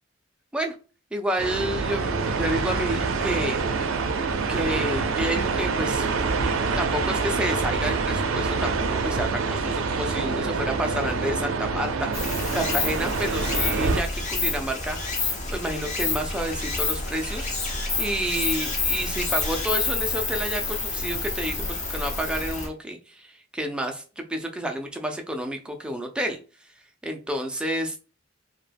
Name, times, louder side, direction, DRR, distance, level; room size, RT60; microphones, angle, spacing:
voice 1, 1.1-3.6 4.5-6.1 6.8-26.4 27.0-28.0, right 1 dB, 5° right, 3 dB, 0.4 m, -30 dB
sound 1, 1.4-14.0, right 4 dB, 90° right, 0.4 m, -26 dB
Stream, 12.1-22.7, left 3 dB, 35° left, 0.7 m, -28 dB
2.2 x 2.1 x 3.3 m, 0.35 s
head